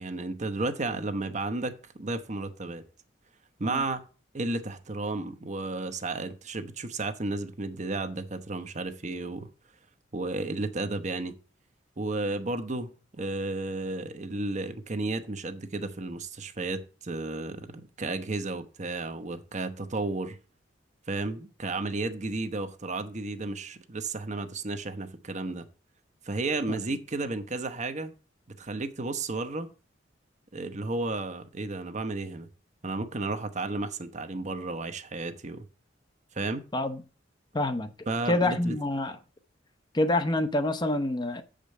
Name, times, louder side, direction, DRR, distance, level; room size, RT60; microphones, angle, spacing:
voice 1, 0.0-2.8 3.6-4.0 4.3-9.5 10.1-11.3 12.0-17.7 18.0-20.4 21.1-25.6 26.2-28.1 28.6-29.7 30.5-32.5 32.8-35.6 36.3-36.7 38.1-38.8, right 2 dB, 40° right, 0.9 m, -33 dB
voice 2, 37.5-37.9 38.3-39.2 39.9-41.4, left 1 dB, 25° left, 0.7 m, -27 dB
7.6 x 5.1 x 6.5 m
head